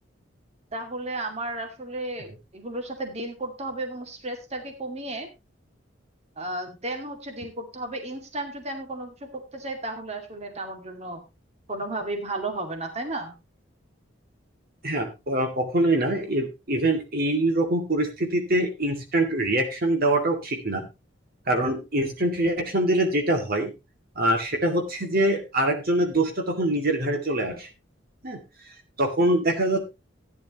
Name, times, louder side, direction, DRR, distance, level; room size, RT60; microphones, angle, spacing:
voice 1, 0.7-5.3 6.4-11.2 11.7-13.3, right 2 dB, 35° right, 5 dB, 2.2 m, -33 dB
voice 2, 14.8-20.9 21.5-23.7 24.2-27.7 28.2-28.4 29.0-29.8, right 1 dB, 50° right, 3 dB, 2.2 m, -24 dB
15.0 x 10.0 x 2.9 m, 0.25 s
head